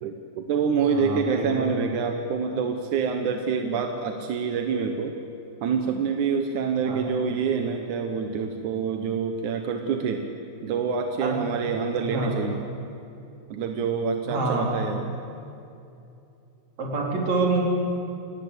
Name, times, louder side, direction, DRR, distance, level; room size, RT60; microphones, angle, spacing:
voice 1, 0.0-5.1 5.6-10.2 10.6-12.6 13.5-15.1, right 6 dB, 65° right, 5 dB, 2.1 m, -26 dB
voice 2, 0.9-1.7 6.8-7.0 11.2-11.3 12.1-12.3 14.3-14.7 16.8-17.6, right 3 dB, 40° right, -1 dB, 4.9 m, -26 dB
28.0 x 18.5 x 8.3 m, 2.7 s
omnidirectional pair, 4.8 m